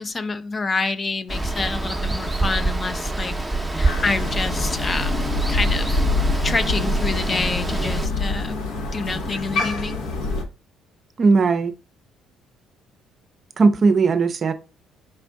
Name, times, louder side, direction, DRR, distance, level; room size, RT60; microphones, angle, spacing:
voice 1, 0.0-6.0 6.4-8.6 8.9-10.0, left 3 dB, 35° left, 0.4 m, -27 dB
Water, 1.3-8.1, right 2 dB, 10° right, 0.6 m, -26 dB
Crow, 3.8-10.4, left 2 dB, 80° left, 0.8 m, -25 dB
voice 2, 11.2-11.7 13.6-14.5, right 4 dB, 45° right, 0.4 m, -17 dB
4.4 x 2.5 x 3.4 m
supercardioid pair, 65°, 0 cm